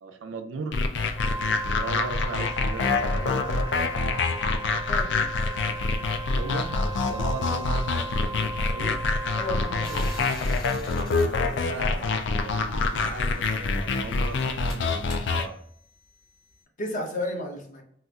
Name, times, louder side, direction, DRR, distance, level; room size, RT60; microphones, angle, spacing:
voice 1, 0.0-0.8 1.8-3.7 6.3-8.3 8.7-9.1 11.0-15.6, right 4 dB, 80° right, 6 dB, 0.5 m, -38 dB
sound 1, 0.7-15.5, left 3 dB, 60° left, 0.4 m, -26 dB
Wind instrument woodwind instrument, 1.1-10.4, right 3 dB, 10° right, 0.6 m, -37 dB
voice 2, 9.3-10.1 16.8-17.8, left 1 dB, 40° left, 1 dB, 0.7 m, -32 dB
sound 2, 9.8-12.5 13.4-16.6, left 1 dB, 25° left, 1.2 m, -46 dB
4.1 x 2.4 x 2.3 m, 0.70 s
head